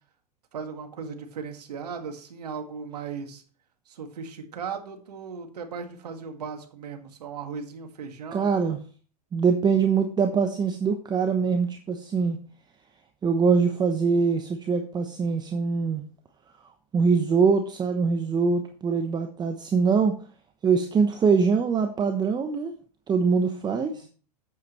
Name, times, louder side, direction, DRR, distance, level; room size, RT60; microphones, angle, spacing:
voice 1, 0.5-3.4 3.9-8.5 23.9-24.1, right 6 dB, 80° right, 5 dB, 1.9 m, -37 dB
voice 2, 8.3-8.8 9.3-12.4 13.2-16.0 16.9-20.2 20.6-22.7 23.1-24.1, right 5 dB, 20° right, 6 dB, 0.8 m, -23 dB
8.6 x 8.1 x 3.1 m, 0.39 s
hypercardioid pair, 110°, 20 cm